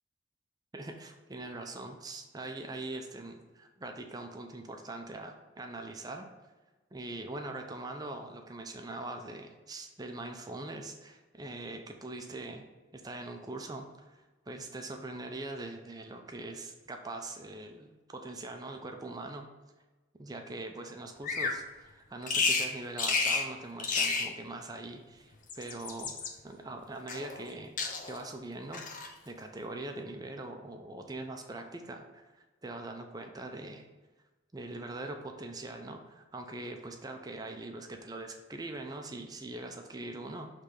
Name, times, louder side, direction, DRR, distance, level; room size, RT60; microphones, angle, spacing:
voice 1, 0.7-6.3 6.9-12.7 12.9-14.2 14.5-19.5 20.1-27.7 28.0-28.8 29.3-32.4 32.6-33.9 34.5-40.5, right 2 dB, 20° right, 4 dB, 0.4 m, -42 dB
Bird vocalization bird call bird song, 21.2-21.6 22.3-22.7 23.0-23.5 23.8-24.3 25.3-26.3 27.1-27.5 27.8-28.3 28.7-29.1, left 4 dB, 40° left, 0.7 m, -31 dB
6.5 x 3.3 x 5.1 m, 1.2 s
head